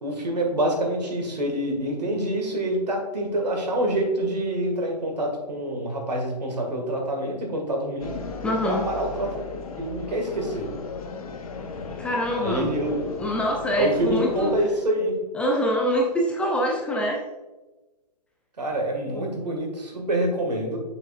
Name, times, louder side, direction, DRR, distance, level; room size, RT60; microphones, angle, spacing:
voice 1, 0.0-8.2 8.6-9.4 9.8-10.7 12.4-13.0 13.8-15.1 18.6-20.8, right 1 dB, 75° right, 2 dB, 1.8 m, -26 dB
sound 1, 8.0-14.6, left 5 dB, 55° left, 0.9 m, -36 dB
voice 2, 8.4-8.9 12.0-12.7 13.2-14.5 15.3-17.2 19.1-19.3, equal, 5° left, -1 dB, 0.4 m, -25 dB
6.6 x 6.3 x 2.4 m, 1.1 s
figure-of-eight pair, 130°, 21 cm